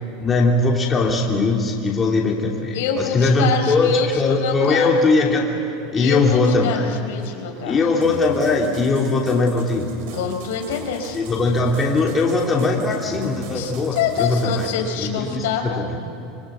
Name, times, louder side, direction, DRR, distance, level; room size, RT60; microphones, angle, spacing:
voice 1, 0.2-5.5 5.9-6.8 7.6-9.9 11.1-14.7 15.0-16.0, left 3 dB, 20° left, -1 dB, 3.0 m, -20 dB
voice 2, 2.7-4.9 5.9-7.8 10.1-11.2 13.5-15.8, left 7 dB, 80° left, 3 dB, 4.3 m, -26 dB
sound 1, 8.0-14.7, right 6 dB, 70° right, 4.2 m, -39 dB
26.0 x 24.0 x 8.3 m, 2.9 s
supercardioid pair, 140°, 0 cm